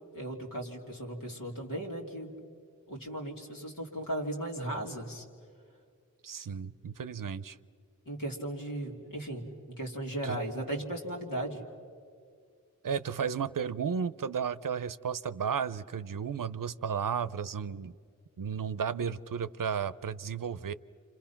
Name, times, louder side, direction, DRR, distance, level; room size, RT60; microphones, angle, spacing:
voice 1, 0.1-2.3 2.9-5.2 8.1-11.6, right 1 dB, 85° left, -1 dB, 3.0 m, -37 dB
voice 2, 6.2-7.6 10.2-10.4 12.8-17.9 18.4-20.7, right 7 dB, 75° right, 16 dB, 0.6 m, -33 dB
30.0 x 26.5 x 5.9 m, 2.3 s
wide cardioid pair, 45°, 33 cm